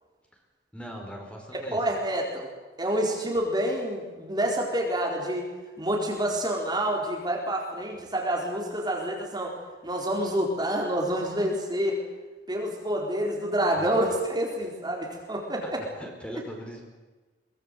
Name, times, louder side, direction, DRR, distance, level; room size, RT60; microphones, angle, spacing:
voice 1, 0.7-1.8 13.8-14.1 16.0-16.8, equal, 5° left, 1 dB, 4.6 m, -40 dB
voice 2, 1.5-2.5 2.8-5.5 5.8-9.6 9.8-12.0 12.5-15.8, right 1 dB, 25° right, 0 dB, 4.1 m, -28 dB
23.0 x 21.5 x 8.2 m, 1.3 s
head